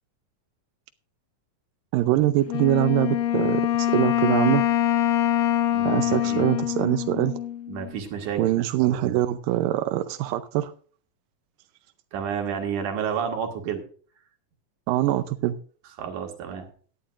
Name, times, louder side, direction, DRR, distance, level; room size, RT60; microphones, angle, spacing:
voice 1, 1.9-4.6 5.8-7.3 8.4-10.7 14.9-15.6, right 14 dB, 85° right, 2.4 m, -23 dB
Wind instrument woodwind instrument, 2.5-7.9, left 12 dB, 70° left, 1.8 m, -24 dB
voice 2, 5.7-6.4 7.7-9.2 12.1-13.8 16.0-16.7, right 7 dB, 70° right, 3.4 m, -31 dB
17.5 x 11.0 x 2.5 m
omnidirectional pair, 3.9 m